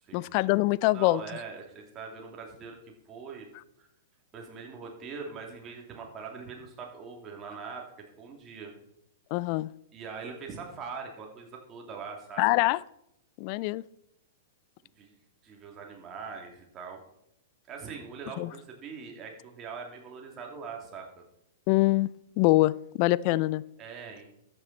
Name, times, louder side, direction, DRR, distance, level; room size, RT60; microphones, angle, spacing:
voice 1, 0.1-1.2 9.3-9.7 12.4-12.8 13.4-13.8 18.4-18.5 21.7-22.1 22.4-23.6, left 19 dB, 45° left, 21 dB, 0.4 m, -24 dB
voice 2, 0.9-2.8 3.1-3.5 3.8-3.9 4.3-8.7 9.9-12.6 14.8-15.2 15.4-17.0 17.7-21.2 23.8-24.3, right 5 dB, 30° right, 1 dB, 3.0 m, -42 dB
13.5 x 9.0 x 4.3 m, 0.77 s
hypercardioid pair, 110°, 0 cm